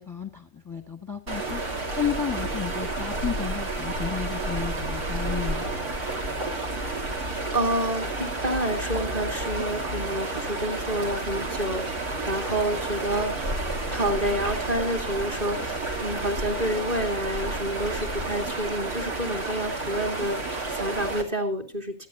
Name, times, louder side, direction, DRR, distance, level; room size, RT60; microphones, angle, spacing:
voice 1, 0.0-1.6 2.0-5.7, left 7 dB, 10° left, 4 dB, 1.2 m, -32 dB
sound 1, 1.3-21.2, right 2 dB, 50° right, 3.4 m, -30 dB
voice 2, 7.5-22.1, right 1 dB, 20° right, 4 dB, 2.4 m, -29 dB
25.5 x 9.4 x 2.7 m, 0.33 s
omnidirectional pair, 2.0 m